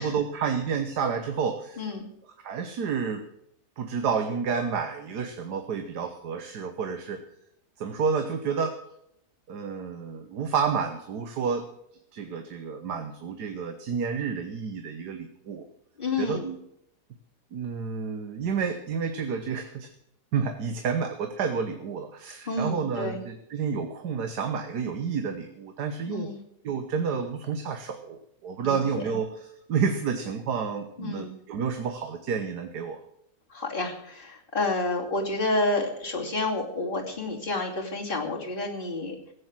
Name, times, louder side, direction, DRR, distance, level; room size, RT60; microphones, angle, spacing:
voice 1, 0.0-1.8 2.4-3.2 3.8-7.2 7.8-8.8 9.5-11.6 12.1-15.7 16.2-16.6 17.5-19.9 20.3-26.3 26.6-29.3 29.7-33.0, right 6 dB, 80° right, 6 dB, 1.7 m, -30 dB
voice 2, 1.8-2.1 16.0-16.5 22.5-23.2 26.1-26.4 28.6-28.8 31.0-31.4 33.5-39.2, left 2 dB, 30° left, -1 dB, 2.9 m, -29 dB
16.0 x 8.5 x 7.5 m, 0.77 s
omnidirectional pair, 1.7 m